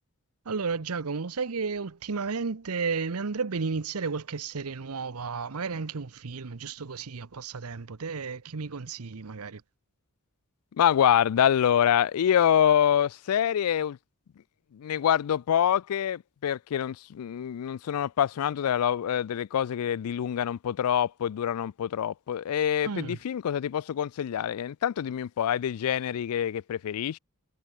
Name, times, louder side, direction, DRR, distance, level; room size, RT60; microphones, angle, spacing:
voice 1, 0.4-9.6 22.8-23.2, right 5 dB, 80° right, 0.8 m, -33 dB
voice 2, 10.8-14.0 14.7-27.2, left 9 dB, 85° left, 0.3 m, -26 dB
head